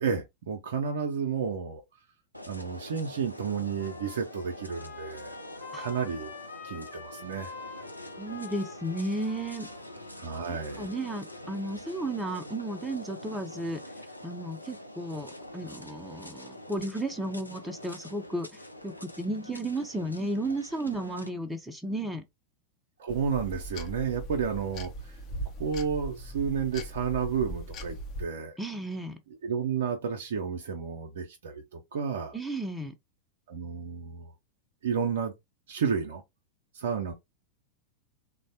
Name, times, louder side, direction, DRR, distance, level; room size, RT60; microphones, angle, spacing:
voice 1, 0.0-1.8 2.5-5.4 5.8-6.3 6.6-7.5 10.2-10.9 23.0-25.2 25.6-28.6 29.4-32.4 33.5-34.3 34.8-35.3 35.7-36.2 36.7-37.1, right 6 dB, 60° right, 0.5 m, -31 dB
sound 1, 2.3-21.3, left 1 dB, 90° left, 0.4 m, -45 dB
Trumpet, 3.1-11.5, left 5 dB, 70° left, 1.0 m, -47 dB
voice 2, 8.2-9.7 10.5-13.8 14.2-22.2 28.6-29.2 32.3-32.9, right 1 dB, 5° right, 0.5 m, -34 dB
sound 2, 23.1-28.3, right 1 dB, 35° left, 0.6 m, -39 dB
3.2 x 2.1 x 2.7 m
figure-of-eight pair, 90°, 0 cm